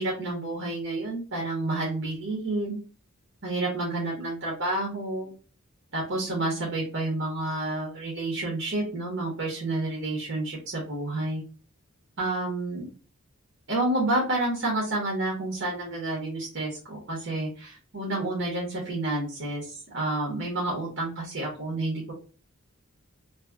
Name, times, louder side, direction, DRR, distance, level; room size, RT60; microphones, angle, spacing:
voice 1, 0.0-2.8 3.4-5.3 5.9-11.4 12.2-12.9 13.7-22.1, right 2 dB, 60° right, -4 dB, 1.1 m, -29 dB
2.8 x 2.8 x 2.4 m, 0.37 s
head